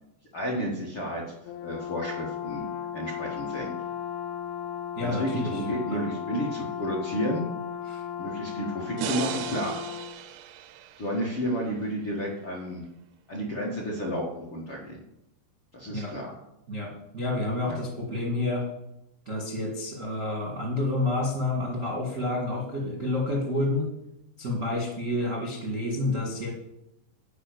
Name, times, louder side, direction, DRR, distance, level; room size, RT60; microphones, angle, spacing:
voice 1, 0.3-1.2 1.6-2.6 2.9-3.7 5.0-7.5 8.2-9.7 11.0-12.8 13.3-15.0 15.7-16.3 17.7-17.8, equal, 50° left, -3 dB, 1.6 m, -31 dB
Brass instrument, 1.5-10.2, left 9 dB, 80° left, 2.4 m, -35 dB
voice 2, 5.0-5.6 5.9-6.0 7.9-8.0 15.9-16.1 16.7-18.7 19.2-23.9 24.4-26.5, left 2 dB, 45° right, -2 dB, 1.0 m, -29 dB
sound 1, 9.0-12.2, right 10 dB, 90° right, 2.8 m, -37 dB
9.8 x 5.7 x 8.2 m, 0.87 s
omnidirectional pair, 4.9 m